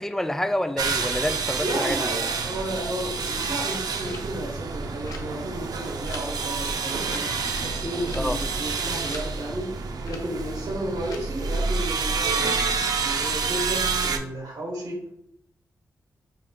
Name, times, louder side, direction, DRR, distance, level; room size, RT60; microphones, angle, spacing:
voice 1, 0.0-2.1 8.1-8.4, left 1 dB, 5° left, 9 dB, 0.3 m, -28 dB
sound 1, 0.8-14.2, right 4 dB, 70° right, 0.4 m, -28 dB
voice 2, 1.6-7.3 7.6-9.7 10.0-12.6 13.0-15.0, right 1 dB, 90° right, 0 dB, 1.1 m, -32 dB
sound 2, 3.4-11.2, left 4 dB, 65° left, 0.7 m, -48 dB
3.7 x 2.4 x 3.6 m, 0.76 s
cardioid pair, 60°, 7 cm